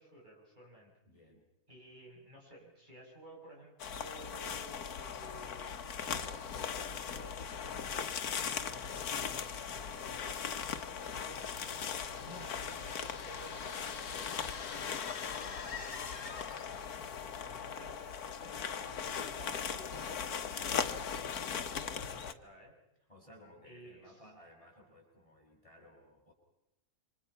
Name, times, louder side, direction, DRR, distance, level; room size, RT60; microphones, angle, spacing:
voice 1, 0.0-0.9 1.7-6.0 6.2-10.6 11.2-11.7 12.2-22.7 23.6-24.2, right 1 dB, 30° right, -3 dB, 7.8 m, -55 dB
voice 2, 1.0-1.5 10.7-11.5 23.1-26.3, equal, 20° left, -2 dB, 6.7 m, -59 dB
sound 1, 3.8-22.3, left 7 dB, 80° left, 1.6 m, -39 dB
sound 2, 11.0-16.9, left 6 dB, 60° left, 1.7 m, -47 dB
28.5 x 26.0 x 5.8 m, 0.91 s
omnidirectional pair, 1.6 m